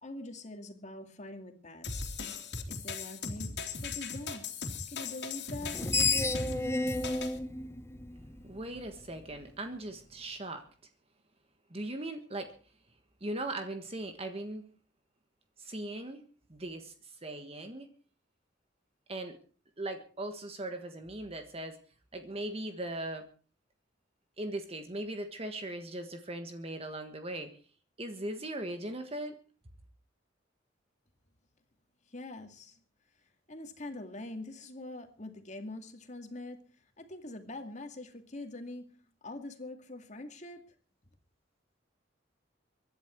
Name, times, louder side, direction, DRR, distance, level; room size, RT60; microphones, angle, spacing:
voice 1, 0.0-2.2 2.7-3.5 3.8-4.5 4.9-5.8 32.1-32.8 33.2-38.9 39.2-40.6, left 2 dB, 40° left, 6 dB, 2.4 m, -44 dB
sound 1, 1.8-7.4, left 4 dB, 60° left, 3.0 m, -38 dB
Screech, 5.6-8.8, left 3 dB, 15° left, 0.9 m, -31 dB
voice 2, 8.4-10.6 11.7-12.5 13.2-14.7 15.6-16.2 16.5-17.9 19.1-19.4 19.8-21.8 22.1-23.3 24.4-27.6 28.0-29.4, right 1 dB, 30° right, 7 dB, 1.5 m, -39 dB
24.5 x 11.0 x 4.6 m, 0.41 s
head